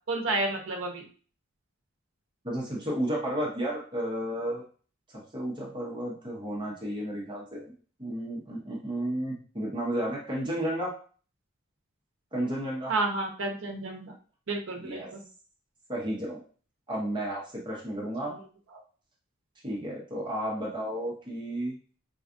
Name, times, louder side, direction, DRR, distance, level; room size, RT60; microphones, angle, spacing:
voice 1, 0.1-1.0 12.9-14.1 14.5-15.2, right 2 dB, 65° right, 1 dB, 0.7 m, -30 dB
voice 2, 2.4-4.6 5.1-7.7 8.0-10.9 12.3-12.9 14.7-15.1 15.9-16.4 16.9-18.3 19.6-21.8, right 1 dB, 20° right, -3 dB, 0.8 m, -32 dB
4.3 x 2.4 x 2.5 m, 0.41 s
head